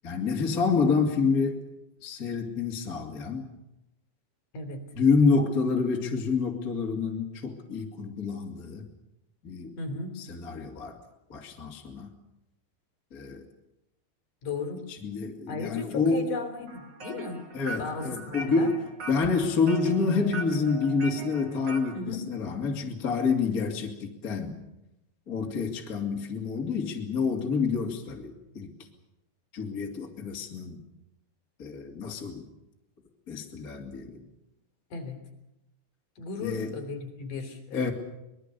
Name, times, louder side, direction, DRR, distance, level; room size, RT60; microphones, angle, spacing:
voice 1, 0.0-1.6 2.0-3.5 5.0-8.9 9.4-9.8 10.2-11.0 11.3-12.1 13.1-13.5 14.9-16.3 17.5-18.8 19.1-24.5 25.3-28.7 29.5-30.8 31.6-32.4 33.3-34.2 36.4-36.7 37.7-37.9, left 4 dB, 25° left, 1 dB, 2.0 m, -28 dB
voice 2, 9.8-10.2 14.4-14.8 15.5-17.4 17.8-18.7 21.9-22.3 34.9-35.2 36.2-37.9, left 4 dB, 50° left, 4 dB, 4.5 m, -35 dB
sound 1, 16.7-22.0, right 3 dB, 40° right, 1.5 m, -41 dB
25.0 x 21.0 x 6.9 m, 0.90 s
omnidirectional pair, 5.1 m